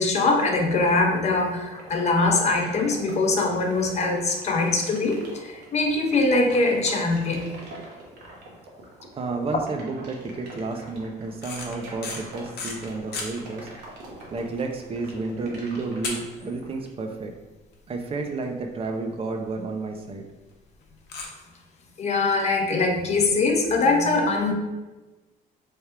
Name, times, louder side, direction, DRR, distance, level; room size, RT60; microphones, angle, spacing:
voice 1, 0.0-7.5 22.0-24.5, left 3 dB, 40° left, 2 dB, 0.7 m, -22 dB
sound 1, 0.9-16.8, right 2 dB, 90° right, 1.0 m, -43 dB
voice 2, 9.1-13.7 14.3-17.3 17.9-20.2, right 3 dB, 35° right, 3 dB, 0.4 m, -31 dB
sound 2, 11.3-13.3 13.8-13.9 14.2-14.4 14.8-14.9 16.0-16.9 17.1-17.2 17.7-17.8 18.1-18.2 18.4-18.5 19.7-19.8 21.1-21.3, left 4 dB, 75° left, 0.8 m, -34 dB
3.3 x 2.3 x 4.3 m, 1.2 s
cardioid pair, 110°, 17 cm